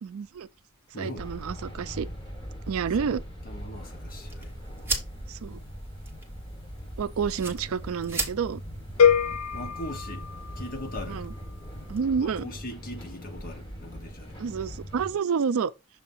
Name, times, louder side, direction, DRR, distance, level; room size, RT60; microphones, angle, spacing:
voice 1, 0.0-0.5 1.0-2.1 2.7-3.2 5.3-5.6 7.0-8.6 11.1-11.3 11.9-12.5 14.4-15.7, right 6 dB, 70° right, 0.4 m, -29 dB
voice 2, 0.9-1.3 3.0-3.2 3.4-4.5 9.5-10.2 10.6-11.3 12.2-14.4, left 1 dB, 45° left, 1.2 m, -40 dB
sound 1, 1.2-15.2, equal, 20° left, 2.2 m, -41 dB
sound 2, 4.1-12.0, right 3 dB, 10° right, 1.3 m, -38 dB
sound 3, 9.0-11.1, left 7 dB, 80° left, 0.5 m, -24 dB
6.9 x 2.8 x 5.4 m
head